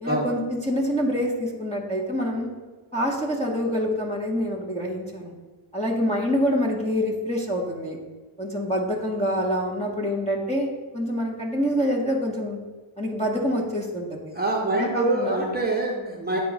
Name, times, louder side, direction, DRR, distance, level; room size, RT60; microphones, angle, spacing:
voice 1, 0.0-2.5 2.9-5.3 5.7-8.0 8.4-10.7 10.9-12.6 13.0-14.3 14.7-15.4, equal, 15° left, -3 dB, 1.1 m, -26 dB
voice 2, 14.3-16.4, right 2 dB, 20° right, -2 dB, 1.0 m, -25 dB
8.5 x 3.0 x 6.0 m, 1.3 s
wide cardioid pair, 130°, 50 cm